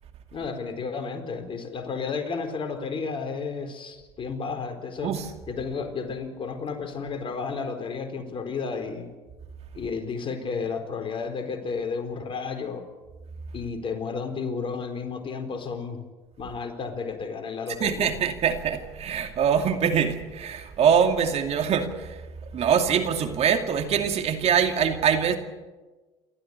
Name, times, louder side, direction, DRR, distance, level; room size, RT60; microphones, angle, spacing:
voice 1, 0.3-5.1 5.5-9.1 9.7-12.8 13.5-16.0 16.4-18.1, left 5 dB, 40° left, 7 dB, 4.2 m, -32 dB
voice 2, 17.8-22.2 22.5-25.4, right 7 dB, 50° right, 6 dB, 2.4 m, -23 dB
28.5 x 14.0 x 8.2 m, 1.3 s
hypercardioid pair, 75°, 14 cm